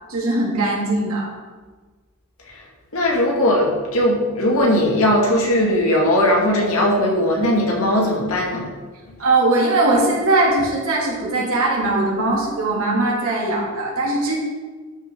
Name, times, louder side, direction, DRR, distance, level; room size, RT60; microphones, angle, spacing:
voice 1, 0.1-1.3 9.2-14.4, right 2 dB, 80° right, -4 dB, 2.9 m, -20 dB
voice 2, 2.9-8.7, left 1 dB, 75° left, -2 dB, 2.4 m, -18 dB
12.5 x 6.8 x 3.9 m, 1.4 s
head